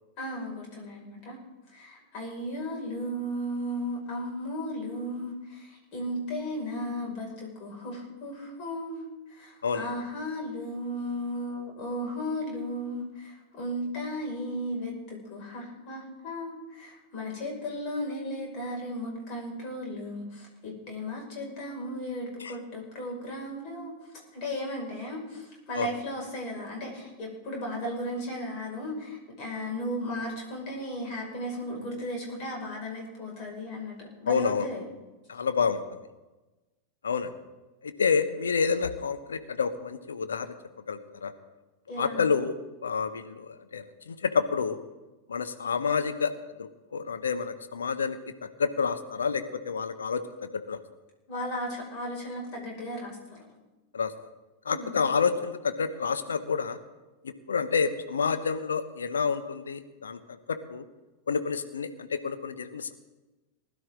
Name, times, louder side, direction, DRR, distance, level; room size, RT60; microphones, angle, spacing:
voice 1, 0.2-1.4 1.7-24.0 24.3-34.8 41.9-42.3 51.3-53.4 54.7-55.0, equal, 40° left, 0 dB, 5.7 m, -35 dB
voice 2, 34.3-34.7 35.3-36.0 37.0-37.3 37.8-40.5 40.9-41.3 42.0-42.5 42.8-44.8 45.3-46.3 46.6-48.2 48.6-50.8 53.9-54.1 54.6-56.8 57.2-60.8 61.3-62.9, left 5 dB, 70° left, 10 dB, 1.0 m, -29 dB
20.0 x 11.5 x 3.8 m, 1.1 s
figure-of-eight pair, 90°, 0 cm